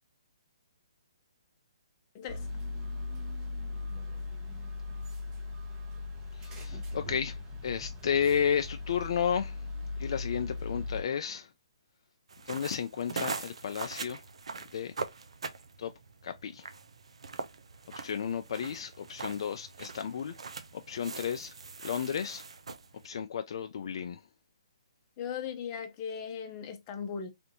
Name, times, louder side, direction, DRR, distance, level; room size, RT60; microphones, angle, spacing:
voice 1, 2.1-2.5 25.2-27.3, left 7 dB, 30° left, 0.7 m, -38 dB
sound 1, 2.3-11.0, left 3 dB, 25° right, 0.9 m, -38 dB
voice 2, 6.4-7.4 7.6-9.6 10.0-11.5 12.5-14.2 14.7-14.9 15.8-15.9 16.2-16.7 18.0-20.3 20.9-21.5 21.8-22.4 23.0-24.2, left 7 dB, 55° left, 0.4 m, -32 dB
sound 2, 12.3-23.1, right 4 dB, 75° right, 0.5 m, -42 dB
3.4 x 2.5 x 2.7 m
hypercardioid pair, 145°, 3 cm